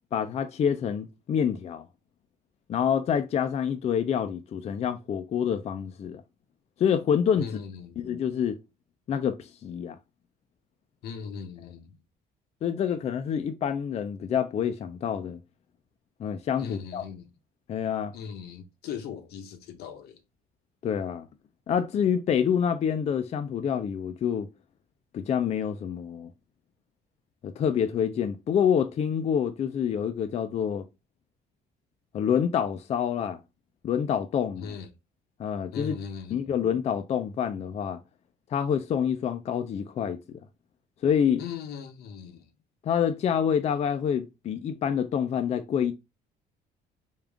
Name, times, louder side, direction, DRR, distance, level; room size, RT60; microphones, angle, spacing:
voice 1, 0.1-1.8 2.7-6.2 6.8-7.5 8.0-8.6 9.1-10.0 12.6-15.4 16.2-17.0 17.7-18.1 20.8-21.3 21.7-24.5 25.1-26.3 27.4-30.9 32.1-33.4 33.8-34.7 35.4-35.9 36.3-38.0 38.5-40.4 41.0-41.4 42.8-45.9, left 8 dB, 40° left, 0.4 m, -27 dB
voice 2, 7.4-8.1 11.0-12.0 16.6-17.3 18.1-20.2 34.6-34.9 35.7-36.6 41.4-42.5, left 7 dB, 70° left, 0.8 m, -39 dB
3.6 x 2.4 x 3.4 m
cardioid pair, 110°, 17 cm